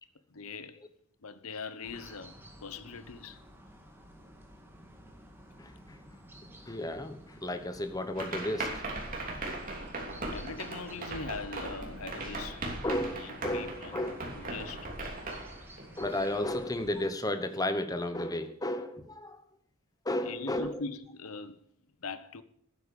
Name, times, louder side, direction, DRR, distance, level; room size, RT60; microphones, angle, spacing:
voice 1, 0.3-0.8 1.2-2.3 2.6-3.4 10.3-12.6 13.2-14.0 14.3-14.9 20.2-21.6 22.0-22.4, left 4 dB, 80° left, 0.9 m, -41 dB
sound 1, 1.8-17.0, equal, 10° right, 1.9 m, -53 dB
voice 2, 6.7-8.8 12.8-14.5 16.0-19.4 20.0-20.8, left 1 dB, 15° left, 1.0 m, -33 dB
sound 2, 8.1-16.6, right 2 dB, 40° right, 3.0 m, -39 dB
12.5 x 9.5 x 7.0 m
head